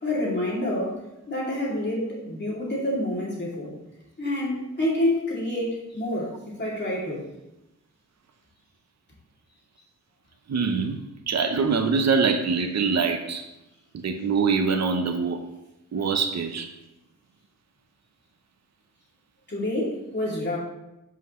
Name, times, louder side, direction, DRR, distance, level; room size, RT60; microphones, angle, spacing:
voice 1, 0.0-1.0 1.3-3.7 4.2-6.3 6.6-7.2 19.5-20.6, left 1 dB, 35° left, -5 dB, 2.6 m, -27 dB
voice 2, 10.5-11.0 11.3-13.5 13.9-15.4 15.9-16.7, right 5 dB, 55° right, 5 dB, 0.7 m, -24 dB
11.5 x 5.7 x 3.1 m, 0.92 s
wide cardioid pair, 160°, 32 cm